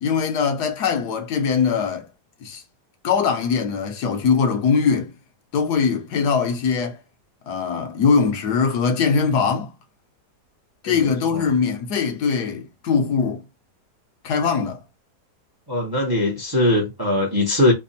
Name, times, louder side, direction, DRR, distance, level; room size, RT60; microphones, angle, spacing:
voice 1, 0.0-2.1 2.4-2.6 3.0-5.1 5.5-7.0 7.5-9.7 10.8-13.4 14.2-14.8, left 5 dB, 75° left, 1.3 m, -21 dB
voice 2, 15.7-17.7, left 1 dB, 25° right, 0.5 m, -20 dB
3.4 x 2.1 x 4.0 m
omnidirectional pair, 1.8 m